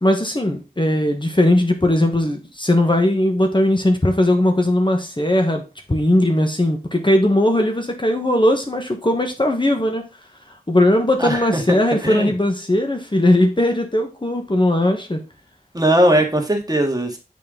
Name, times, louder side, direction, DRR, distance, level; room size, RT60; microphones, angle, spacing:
voice 1, 0.0-5.6 5.9-10.0 10.7-15.2, left 1 dB, 30° left, 1.3 m, -18 dB
voice 2, 11.2-11.6 12.0-12.3 15.7-17.2, right 1 dB, 25° right, 1.8 m, -19 dB
6.8 x 5.3 x 3.8 m
wide cardioid pair, 45°, 15 cm